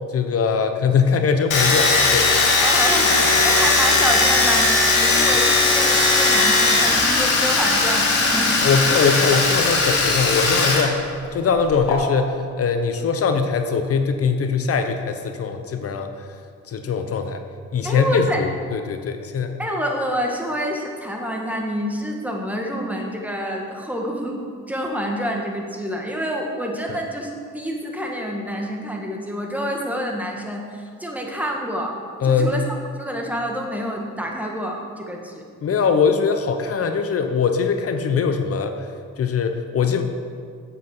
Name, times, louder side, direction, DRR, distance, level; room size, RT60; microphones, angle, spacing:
voice 1, 0.1-2.3 8.6-16.3 16.7-17.4 17.7-19.5 26.9-27.0 32.2-32.6 35.6-38.9 39.2-40.0, left 5 dB, 50° left, 7 dB, 0.9 m, -21 dB
Domestic sounds home sounds, 1.5-10.8 11.1-11.9, left 3 dB, 80° left, 2.1 m, -18 dB
voice 2, 2.6-4.7 4.9-8.7 17.8-18.4 19.6-32.0 32.2-32.6 33.0-35.5, equal, 5° right, 0 dB, 1.7 m, -27 dB
8.0 x 7.8 x 6.0 m, 2.2 s
cardioid pair, 90°, 30 cm